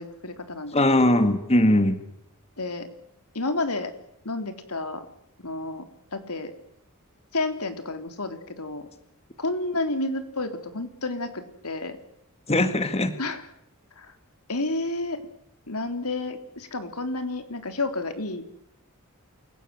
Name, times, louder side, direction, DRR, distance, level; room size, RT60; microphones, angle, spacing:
voice 1, 0.0-1.2 2.6-2.9 3.3-3.9 4.3-5.1 5.4-5.8 6.1-6.5 7.3-8.9 9.4-12.0 13.2-13.4 14.0-14.1 14.5-15.2 15.7-18.5, left 2 dB, 85° left, 8 dB, 3.6 m, -30 dB
voice 2, 0.7-2.0 12.5-13.1, left 1 dB, 30° left, 10 dB, 1.9 m, -20 dB
28.5 x 17.0 x 9.4 m, 0.76 s
head